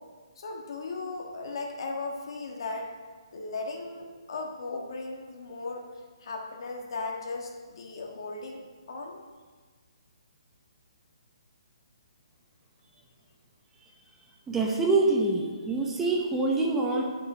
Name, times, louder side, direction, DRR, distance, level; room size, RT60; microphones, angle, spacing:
voice 1, 0.4-2.9 3.3-5.9 6.2-8.6 8.9-9.2, left 3 dB, 60° left, 1 dB, 1.6 m, -36 dB
voice 2, 14.5-17.0, right 3 dB, 10° right, -1 dB, 0.7 m, -25 dB
6.0 x 6.0 x 6.8 m, 1.4 s
hypercardioid pair, 160°, 3 cm